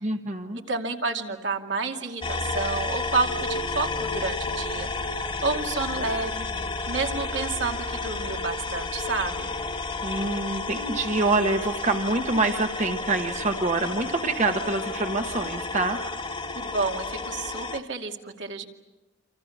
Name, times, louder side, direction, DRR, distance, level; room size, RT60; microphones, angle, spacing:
voice 1, 0.0-0.6 10.0-16.0, right 3 dB, 40° right, 5 dB, 1.2 m, -26 dB
voice 2, 0.7-6.5 6.9-9.5 16.5-18.7, right 4 dB, 65° right, 3 dB, 2.5 m, -30 dB
sound 1, 2.2-17.8, left 3 dB, 25° left, 1.5 m, -31 dB
29.0 x 26.5 x 7.2 m, 1.1 s
head